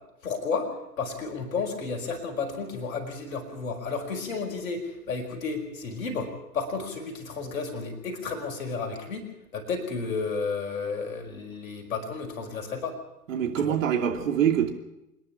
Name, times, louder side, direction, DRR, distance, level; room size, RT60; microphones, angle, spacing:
voice 1, 0.2-13.0 13.6-13.8, left 4 dB, 55° left, 5.1 m, -32 dB
voice 2, 13.3-14.7, right 9 dB, 50° right, 2.8 m, -24 dB
26.0 x 11.0 x 10.0 m
figure-of-eight pair, 115°, 49 cm